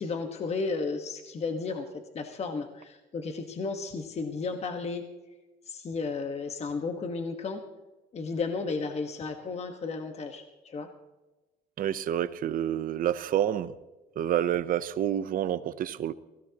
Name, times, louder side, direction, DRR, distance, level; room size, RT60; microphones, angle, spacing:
voice 1, 0.0-1.9 2.1-5.0 5.7-7.6 8.1-10.9, left 4 dB, 40° left, 6 dB, 1.4 m, -33 dB
voice 2, 11.8-13.8 14.2-16.1, right 11 dB, 55° right, 15 dB, 0.7 m, -28 dB
22.5 x 16.5 x 2.9 m, 1.1 s
cardioid pair, 110°, 17 cm